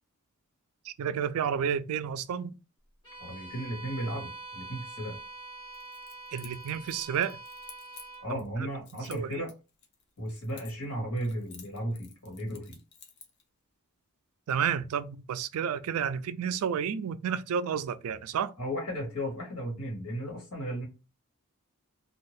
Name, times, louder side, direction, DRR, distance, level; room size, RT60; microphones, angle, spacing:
voice 1, 0.8-2.6 6.3-7.4 8.3-8.4 9.1-9.4 14.5-18.5, right 7 dB, 70° right, 0.3 m, -31 dB
Bowed string instrument, 3.0-8.3, right 3 dB, 20° left, 1.4 m, -45 dB
voice 2, 3.2-5.2 8.2-9.5 10.2-12.8 18.6-20.9, equal, 75° left, 1.5 m, -35 dB
Keys jangling, 5.7-8.5 8.8-10.9 11.2-13.4, left 6 dB, 50° left, 0.6 m, -52 dB
2.7 x 2.3 x 3.2 m
head